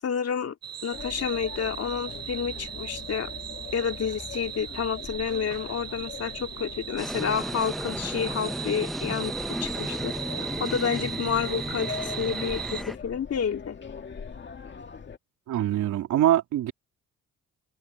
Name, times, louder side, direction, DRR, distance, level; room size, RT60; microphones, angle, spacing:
voice 1, 0.0-0.5 0.8-3.3 3.7-9.3 9.6-10.2 10.6-13.8, left 7 dB, 55° left, 2.4 m, -29 dB
sound 1, 0.6-12.8, right 9 dB, 60° right, 7.2 m, -38 dB
sound 2, 0.9-15.2, left 6 dB, 35° left, 2.2 m, -42 dB
sound 3, 7.0-12.9, equal, ahead, 0.8 m, -34 dB
voice 2, 15.5-16.7, right 12 dB, 80° right, 3.0 m, -23 dB
cardioid pair, 90°, 30 cm